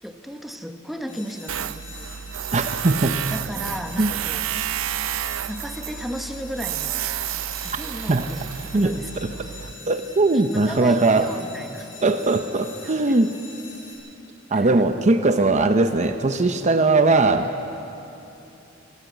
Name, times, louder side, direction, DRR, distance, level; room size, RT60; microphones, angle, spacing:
voice 1, 0.0-2.1 3.3-4.5 5.5-7.0 7.4-9.5 10.3-11.9 12.8-13.2 14.5-14.7, equal, ahead, 6 dB, 1.0 m, -35 dB
sound 1, 1.1-13.9, left 3 dB, 40° left, 6.6 m, -43 dB
Tools, 1.5-9.7, right 11 dB, 75° right, 0.4 m, -30 dB
voice 2, 2.5-3.2 4.0-4.1 8.1-8.3 8.7-9.3 9.9-11.3 12.0-13.3 14.5-17.5, right 2 dB, 35° right, 8 dB, 0.7 m, -20 dB
26.0 x 14.0 x 8.4 m, 2.8 s
head